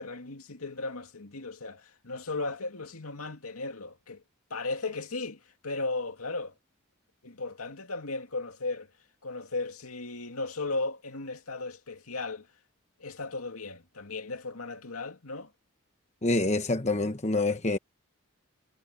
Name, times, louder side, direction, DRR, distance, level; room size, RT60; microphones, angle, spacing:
voice 1, 0.0-4.2 4.5-6.5 7.2-8.9 9.2-12.5 13.0-15.5, left 3 dB, 80° left, 2.4 m, -36 dB
voice 2, 16.2-17.8, left 2 dB, 30° left, 1.1 m, -26 dB
head